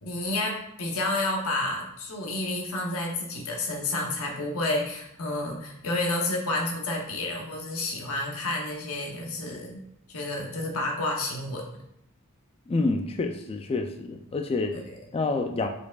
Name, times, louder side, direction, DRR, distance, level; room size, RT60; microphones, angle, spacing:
voice 1, 0.0-9.8 10.1-11.6 14.7-15.0, left 2 dB, 75° left, 0 dB, 0.9 m, -30 dB
voice 2, 12.7-14.7 15.1-15.7, left 3 dB, 25° left, 5 dB, 0.3 m, -28 dB
4.8 x 4.7 x 2.3 m, 0.79 s
head